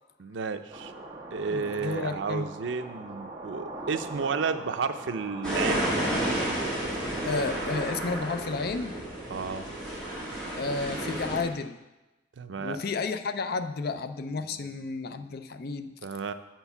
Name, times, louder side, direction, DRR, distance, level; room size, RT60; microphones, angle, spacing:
voice 1, 0.2-0.9 1.3-6.0 9.3-9.7 12.4-12.8 16.0-16.3, right 5 dB, 85° right, 10 dB, 0.5 m, -32 dB
sound 1, 0.7-5.8, right 2 dB, 20° right, 1.3 m, -41 dB
voice 2, 1.5-2.5 7.2-9.0 10.6-11.8 12.6-15.9, left 4 dB, 60° left, 9 dB, 0.5 m, -32 dB
sound 2, 5.4-11.4, right 1 dB, 5° left, 2.4 m, -31 dB
7.9 x 4.5 x 6.9 m, 1.1 s
head